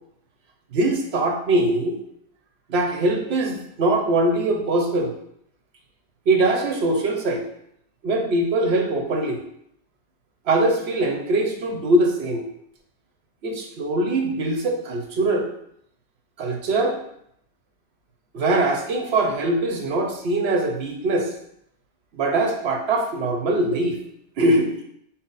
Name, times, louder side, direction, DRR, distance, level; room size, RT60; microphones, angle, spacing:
voice 1, 0.7-2.0 2.7-5.1 6.3-7.4 8.0-9.4 10.5-12.5 13.4-15.4 16.4-17.0 18.3-21.3 22.1-24.0 24.4-24.7, right 2 dB, 75° right, 3 dB, 1.0 m, -22 dB
5.8 x 2.1 x 3.9 m, 0.72 s
omnidirectional pair, 1.1 m